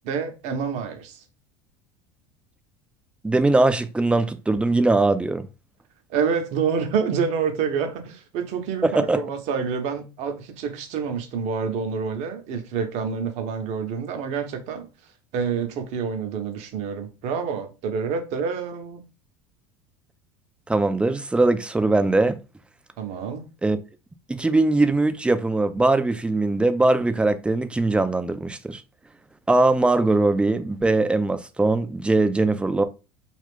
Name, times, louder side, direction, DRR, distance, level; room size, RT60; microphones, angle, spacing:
voice 1, 0.0-1.2 6.1-14.9 15.3-19.0 23.0-23.5, right 6 dB, 55° right, 0.8 m, -27 dB
voice 2, 3.2-5.5 8.8-9.2 20.7-22.4 23.6-23.8 24.3-28.8 29.5-32.8, right 2 dB, 10° right, 0.4 m, -21 dB
2.4 x 2.4 x 3.5 m
hypercardioid pair, 80°, 14 cm